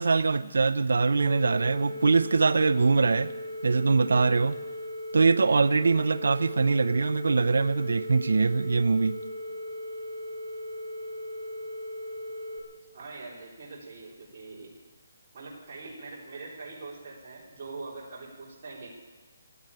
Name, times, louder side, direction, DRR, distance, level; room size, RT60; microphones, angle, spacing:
voice 1, 0.0-3.3 3.6-4.6 5.1-9.2, right 4 dB, 80° right, 0.6 m, -23 dB
sound 1, 1.2-12.6, left 1 dB, 10° left, 3.4 m, -38 dB
voice 2, 12.9-14.7 15.3-19.0, right 3 dB, 35° right, 3.7 m, -43 dB
16.0 x 9.0 x 9.7 m
hypercardioid pair, 175°, 0 cm